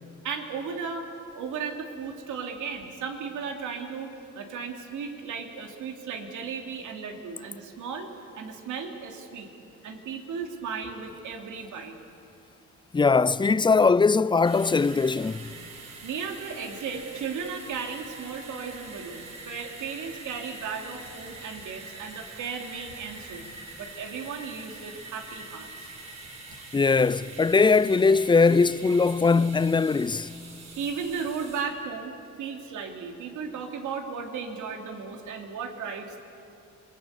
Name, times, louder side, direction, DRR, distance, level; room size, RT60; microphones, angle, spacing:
voice 1, 0.2-1.1 1.3-8.1 8.3-9.5 9.8-12.0 15.8-25.9 30.8-36.2, right 5 dB, 80° right, 3.0 m, -35 dB
voice 2, 12.9-15.5 26.7-30.3, left 4 dB, 15° left, 0.5 m, -21 dB
sound 1, 14.4-31.6, right 3 dB, 60° right, 6.6 m, -44 dB
27.0 x 22.0 x 8.4 m
cardioid pair, 90°, 30 cm